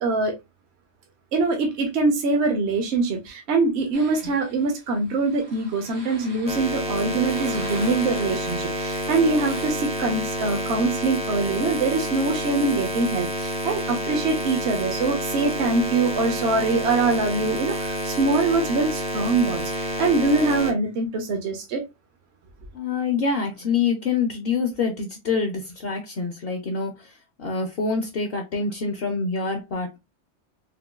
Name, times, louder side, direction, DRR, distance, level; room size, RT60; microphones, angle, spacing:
voice 1, 0.0-0.3 1.3-21.8, right 3 dB, 65° right, 0.9 m, -23 dB
sound 1, 3.9-9.7, right 2 dB, 85° right, 1.8 m, -44 dB
sound 2, 6.5-20.7, equal, 10° right, 0.3 m, -29 dB
voice 2, 22.7-30.0, left 5 dB, 60° left, 0.8 m, -26 dB
3.7 x 2.2 x 2.2 m
omnidirectional pair, 1.2 m